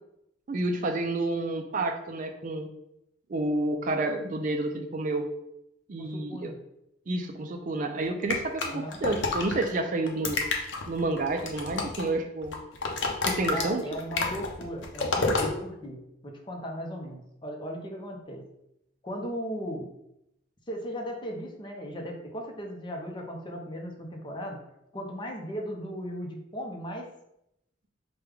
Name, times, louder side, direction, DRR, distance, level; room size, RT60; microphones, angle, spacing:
voice 1, 0.5-2.7 3.3-5.2 5.9-6.5 7.1-10.4 10.9-12.6 13.2-13.8, right 2 dB, 45° right, 5 dB, 0.4 m, -29 dB
voice 2, 6.0-6.6 8.7-9.0 13.5-18.4 19.0-19.9 20.7-24.6 24.9-27.1, equal, 25° left, 1 dB, 0.6 m, -37 dB
sound 1, 8.3-9.7 10.1-12.1 12.4-15.5, left 3 dB, 75° left, 0.7 m, -29 dB
4.8 x 2.2 x 3.4 m, 0.81 s
head